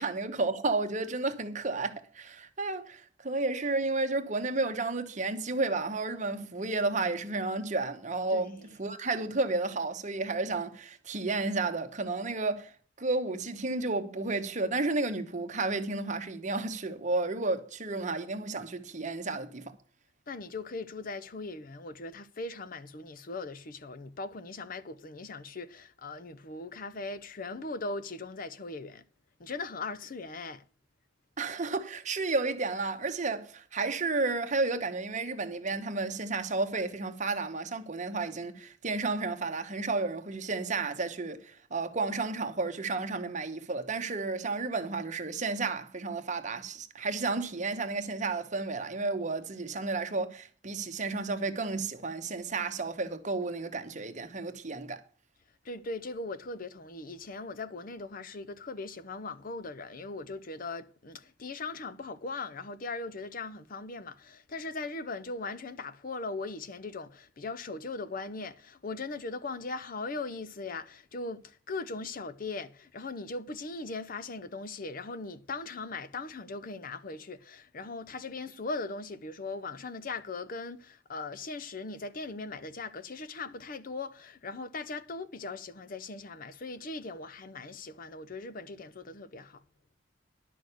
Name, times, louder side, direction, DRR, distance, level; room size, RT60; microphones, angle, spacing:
voice 1, 0.0-12.7 13.0-19.7 31.4-55.0, right 3 dB, 40° right, 1.1 m, -32 dB
voice 2, 8.3-8.7 20.3-29.0 29.4-30.6 55.6-89.6, left 3 dB, 45° left, 0.7 m, -39 dB
11.0 x 6.3 x 8.1 m
head